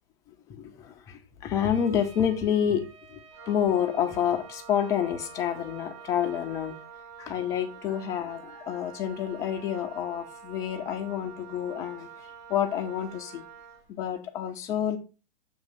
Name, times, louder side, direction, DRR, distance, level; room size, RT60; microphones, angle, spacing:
voice 1, 0.6-2.8 3.5-6.8 7.2-12.1 12.5-13.5 13.9-15.0, left 9 dB, 10° left, 0.3 m, -28 dB
Trumpet, 1.6-6.9, right 4 dB, 60° right, 1.4 m, -53 dB
Wind instrument woodwind instrument, 3.3-13.9, right 6 dB, 30° right, 1.2 m, -47 dB
7.2 x 2.9 x 5.5 m
hypercardioid pair, 125°, 33 cm